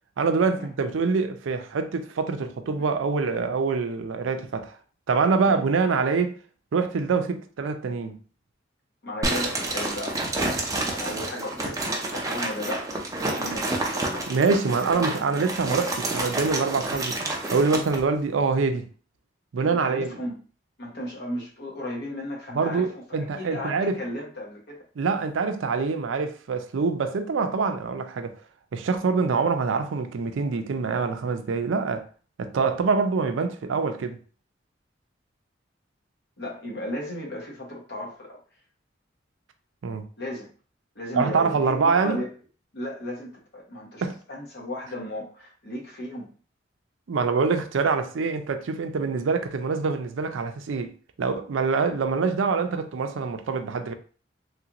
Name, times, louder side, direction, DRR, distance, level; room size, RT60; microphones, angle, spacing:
voice 1, 0.2-4.8 5.1-6.3 6.7-8.2 14.3-17.2 17.5-18.9 19.5-20.1 22.5-23.9 25.0-28.3 28.7-32.0 32.4-34.2 39.8-40.1 41.1-42.2 44.0-44.2 47.1-53.9, right 4 dB, 85° right, 0.4 m, -25 dB
voice 2, 9.0-10.2 10.9-12.9 13.2-14.3 14.9-15.1 19.6-20.4 20.8-23.0 23.4-24.8 36.4-38.4 40.2-40.5 40.9-42.3 42.7-46.3, left 1 dB, 60° left, 1.0 m, -35 dB
sound 1, 9.2-18.0, right 2 dB, 20° right, 0.5 m, -29 dB
3.2 x 2.5 x 2.9 m
head